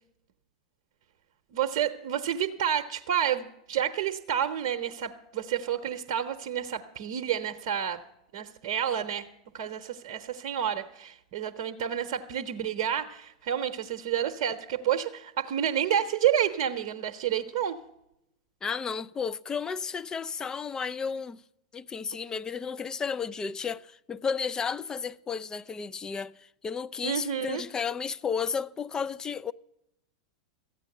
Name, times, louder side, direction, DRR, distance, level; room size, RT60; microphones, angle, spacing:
voice 1, 1.5-8.0 8.3-9.3 9.5-17.8 27.0-27.6, right 9 dB, 60° right, 0.8 m, -29 dB
voice 2, 18.6-21.4 21.7-29.5, left 6 dB, 20° left, 0.4 m, -33 dB
14.5 x 9.0 x 6.6 m
hypercardioid pair, 100°, 3 cm